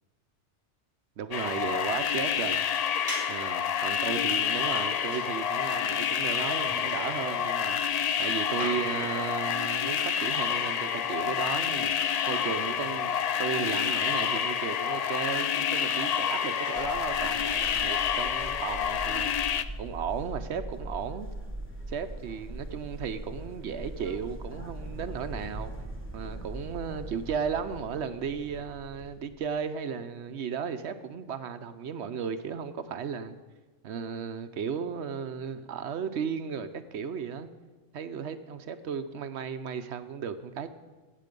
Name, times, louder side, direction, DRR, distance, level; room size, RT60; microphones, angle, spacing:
voice 1, 1.2-2.6 3.3-7.8 8.2-19.3 19.8-21.3 21.9-25.7 26.1-33.4 33.8-37.5 37.9-40.7, right 7 dB, 70° right, 11 dB, 1.0 m, -35 dB
sound 1, 1.3-19.6, left 8 dB, 75° left, 0.3 m, -28 dB
sound 2, 1.4-19.8, equal, 30° left, 2.7 m, -47 dB
sound 3, 16.8-29.3, right 1 dB, 10° left, 1.3 m, -41 dB
16.0 x 8.2 x 5.2 m, 1.3 s
omnidirectional pair, 1.2 m